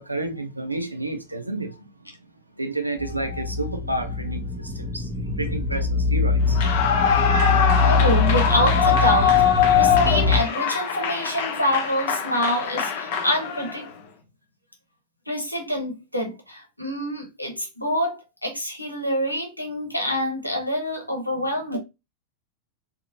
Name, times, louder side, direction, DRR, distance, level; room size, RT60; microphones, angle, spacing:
voice 1, 0.0-1.7 2.6-5.0 5.4-6.6, right 2 dB, 85° right, 0.4 m, -30 dB
sound 1, 3.0-10.4, left 4 dB, 10° right, 0.6 m, -23 dB
Clapping / Cheering / Applause, 6.5-13.9, left 8 dB, 50° left, 0.5 m, -22 dB
voice 2, 7.9-9.4 9.7-13.8 15.3-21.8, equal, 85° left, 0.7 m, -26 dB
3.0 x 2.0 x 2.6 m
figure-of-eight pair, 90°, 0 cm